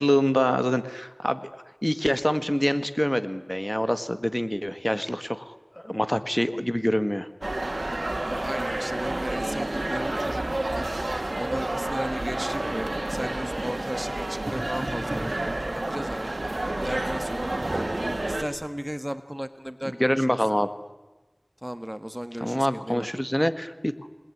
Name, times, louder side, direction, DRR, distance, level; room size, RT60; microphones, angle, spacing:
voice 1, 0.0-1.5 1.8-5.5 5.8-7.3 19.8-20.7 22.4-23.9, equal, 15° left, 11 dB, 1.6 m, -25 dB
sound 1, 7.4-18.4, right 1 dB, 70° right, 2.3 m, -29 dB
voice 2, 8.2-10.4 10.7-10.9 11.4-17.9 18.2-20.4 21.6-23.1, equal, 15° right, 11 dB, 1.4 m, -35 dB
28.0 x 20.5 x 9.7 m, 1.2 s
wide cardioid pair, 40°, 0 cm